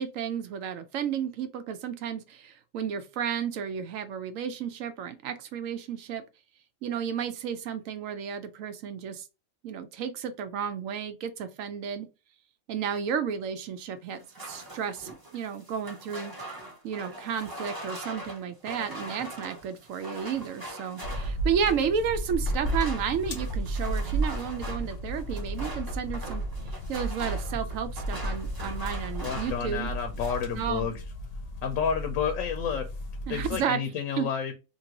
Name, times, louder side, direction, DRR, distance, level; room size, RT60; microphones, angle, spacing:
voice 1, 0.0-6.2 6.8-9.3 9.6-12.1 12.7-16.3 16.8-26.4 26.9-29.9 30.6-30.9 33.3-33.8 34.2-34.3, right 7 dB, 75° right, 0.9 m, -32 dB
sound 1, 14.2-21.9 22.4-29.7 30.0-30.6, right 1 dB, 20° right, 0.7 m, -42 dB
sound 2, 17.4-17.6 18.1-18.3 19.5-20.5 21.0-21.8 23.8-25.0 25.4-25.8 26.4-26.8 27.2-28.8 29.1-29.9, right 3 dB, 55° right, 0.4 m, -53 dB
sound 3, 21.0-33.6, right 1 dB, 55° left, 0.8 m, -33 dB
voice 2, 29.2-30.9 31.6-32.9 33.3-34.5, left 7 dB, 75° left, 1.0 m, -30 dB
2.9 x 2.7 x 2.8 m
omnidirectional pair, 1.4 m